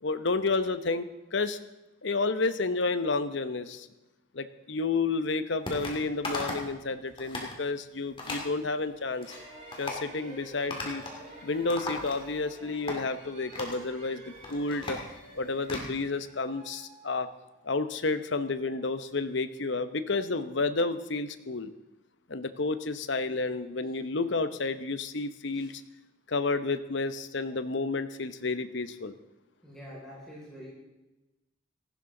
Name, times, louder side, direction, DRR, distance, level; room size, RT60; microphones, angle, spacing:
voice 1, 0.0-1.6 2.0-3.9 4.3-9.3 9.8-11.0 11.4-15.0 15.3-17.3 17.6-21.7 22.3-25.8 26.3-29.1, left 3 dB, 65° left, 11 dB, 0.8 m, -30 dB
sound 1, 5.7-6.0 6.2-6.7 7.1-7.5 8.2-8.5 9.0-9.4 9.7-10.0 10.7-11.2 11.5-12.4 12.9-13.0 13.5-13.8 14.3-15.9, left 2 dB, 25° left, 2.4 m, -37 dB
sound 2, 9.0-17.7, right 1 dB, 40° right, 6.0 m, -50 dB
voice 2, 29.6-30.7, equal, 5° left, -7 dB, 5.2 m, -46 dB
18.0 x 15.0 x 3.8 m, 1.0 s
head